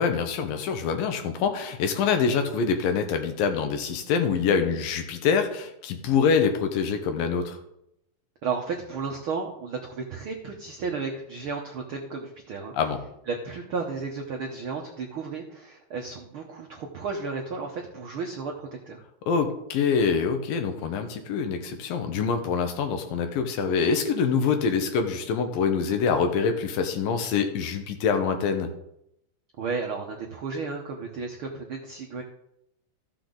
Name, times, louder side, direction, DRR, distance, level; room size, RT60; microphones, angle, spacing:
voice 1, 0.0-7.6 12.7-13.0 19.3-28.7, left 6 dB, 80° left, 6 dB, 2.8 m, -25 dB
voice 2, 8.4-12.7 13.3-19.0 29.6-32.2, right 4 dB, 80° right, 1 dB, 1.1 m, -33 dB
14.5 x 6.7 x 3.9 m, 0.79 s
omnidirectional pair, 4.0 m